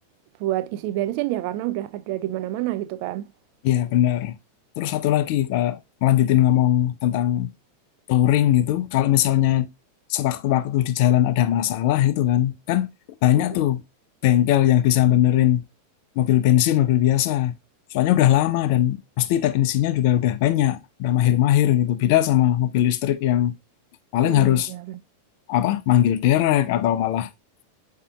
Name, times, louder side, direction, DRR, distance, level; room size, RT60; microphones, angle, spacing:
voice 1, 0.4-3.3 13.4-13.5 24.2-25.0, right 14 dB, 45° right, 0.4 m, -28 dB
voice 2, 3.6-4.4 4.8-7.5 8.1-9.7 10.1-12.9 13.2-13.8 14.2-15.6 16.2-17.5 17.9-23.6 24.1-24.7 25.5-27.3, left 12 dB, 45° left, 0.4 m, -20 dB
8.1 x 2.8 x 2.3 m
figure-of-eight pair, 90°, 0 cm